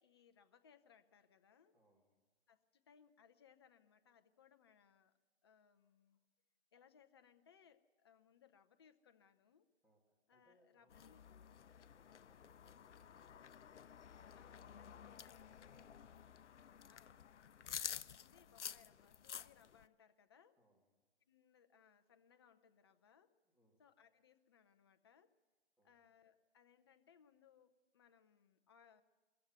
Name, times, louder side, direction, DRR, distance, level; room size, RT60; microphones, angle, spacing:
voice 1, 0.0-1.7 2.5-5.1 5.4-6.3 6.7-9.7 10.3-11.2 11.5-11.7 14.3-15.5 16.9-17.3 17.6-20.6 21.3-23.4 23.8-25.3 25.8-29.0, left 7 dB, 20° left, 9 dB, 0.6 m, -69 dB
voice 2, 1.7-2.1 9.8-10.0 10.3-13.8 14.3-16.3 17.5-17.7 20.6-20.9 23.4-23.8 25.8-26.0, equal, 5° right, -3 dB, 2.2 m, -76 dB
sound 1, 10.9-19.8, left 8 dB, 80° left, 0.6 m, -51 dB
21.5 x 14.5 x 9.3 m, 1.3 s
hypercardioid pair, 155°, 35 cm